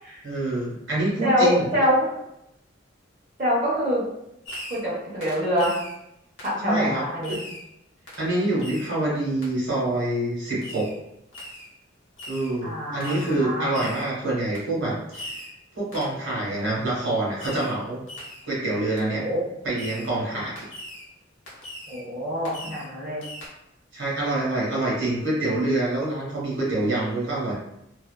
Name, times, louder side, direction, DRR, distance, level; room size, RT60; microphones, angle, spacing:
voice 1, 0.2-1.7 6.6-7.4 8.2-10.9 12.3-15.4 15.8-18.0 18.4-19.2 19.6-20.7 23.9-27.5, right 2 dB, 65° right, -6 dB, 1.1 m, -26 dB
voice 2, 1.2-2.1 3.4-4.0 4.7-5.8 6.4-7.4 12.6-13.9 19.1-19.4 21.9-23.2, equal, 35° right, -9 dB, 0.8 m, -25 dB
Fireworks, 4.4-4.9 5.2-6.0 6.4-6.6 7.2-7.7 8.1-8.3 8.6-9.0 9.4-9.5 10.6-11.0 11.3-11.7 12.2-12.5 13.0-13.4 13.7-14.1 14.5-14.7 15.1-15.6 15.9-16.2 17.4-17.8 18.1-18.5 19.0-19.1 19.8-20.1 20.6-21.1 21.5-22.0 22.4-22.9 23.2-23.5, left 1 dB, 70° left, 0.8 m, -40 dB
2.6 x 2.3 x 2.2 m, 0.81 s
head